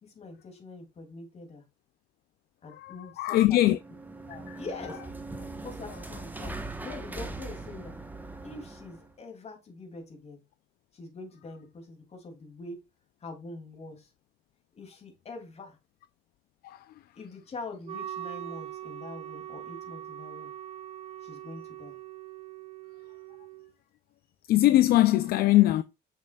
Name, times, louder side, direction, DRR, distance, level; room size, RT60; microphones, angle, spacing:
voice 1, 0.0-1.6 2.6-3.6 4.3-5.0 5.6-8.0 8.4-10.4 10.9-12.8 13.2-14.1 14.8-15.8 17.2-20.5 21.2-21.9, left 3 dB, 40° left, 2.7 m, -44 dB
voice 2, 2.8-3.8 4.5-4.6 16.6-16.8 24.5-25.8, left 15 dB, 65° left, 0.5 m, -22 dB
sound 1, 3.6-9.1, right 2 dB, 10° right, 1.1 m, -40 dB
Wind instrument woodwind instrument, 17.8-23.7, right 12 dB, 35° right, 0.5 m, -42 dB
6.7 x 6.1 x 2.3 m
cardioid pair, 110°, 17 cm